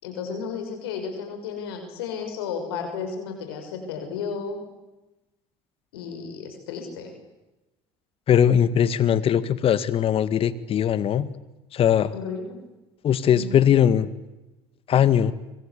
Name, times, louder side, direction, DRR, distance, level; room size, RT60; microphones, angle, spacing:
voice 1, 0.0-4.6 5.9-7.1 12.1-12.6 13.3-13.6, left 6 dB, 85° left, 5 dB, 6.1 m, -33 dB
voice 2, 8.3-11.3 11.7-12.1 13.0-14.1 14.9-15.3, left 9 dB, 50° left, 15 dB, 1.8 m, -20 dB
26.5 x 24.5 x 8.4 m, 1.0 s
hypercardioid pair, 75°, 13 cm